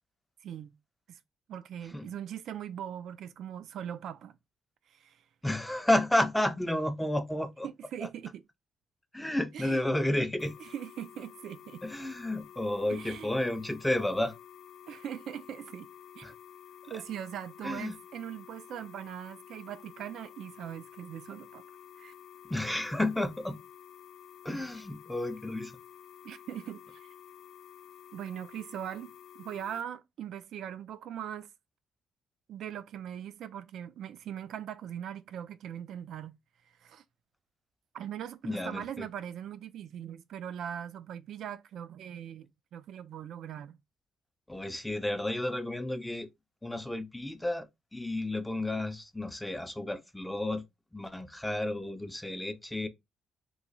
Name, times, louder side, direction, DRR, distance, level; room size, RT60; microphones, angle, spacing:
voice 1, 0.4-0.7 1.1-1.2 1.5-4.4 4.9-5.2 7.6-8.4 9.5-9.8 10.6-11.8 12.9-13.3 14.9-15.9 16.2-16.3 16.9-21.6 22.0-22.1 26.2-27.1 28.1-31.5 32.5-36.4 36.7-37.0 37.9-42.5 42.7-43.8, right 9 dB, 75° right, 0.3 m, -41 dB
voice 2, 5.4-7.7 8.0-8.1 9.1-10.5 11.8-14.3 16.2-16.3 16.9-17.0 17.6-17.9 22.5-23.6 24.4-25.7 38.4-39.1 44.5-46.3 46.6-47.7 47.9-50.6 50.9-52.9, left 1 dB, 5° left, 0.5 m, -31 dB
sound 1, 10.4-29.8, left 9 dB, 70° left, 0.3 m, -52 dB
3.0 x 2.2 x 3.8 m
cardioid pair, 90°, 0 cm